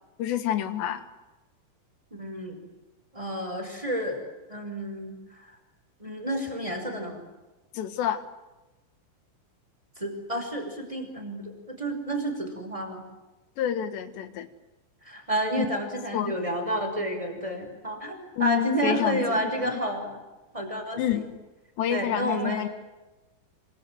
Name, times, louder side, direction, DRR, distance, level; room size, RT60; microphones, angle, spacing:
voice 1, 0.2-1.0 7.7-8.2 13.6-14.5 15.6-15.7 16.1-16.3 18.4-19.7 21.0-21.2 21.8-22.7, left 11 dB, 65° left, 12 dB, 3.3 m, -28 dB
voice 2, 2.1-2.6 3.1-4.2 4.5-5.5 6.0-7.2 10.0-13.0 15.0-20.2 20.5-21.3 21.9-22.7, right 1 dB, 5° right, 4 dB, 5.3 m, -30 dB
27.0 x 26.0 x 7.8 m, 1.1 s
omnidirectional pair, 5.9 m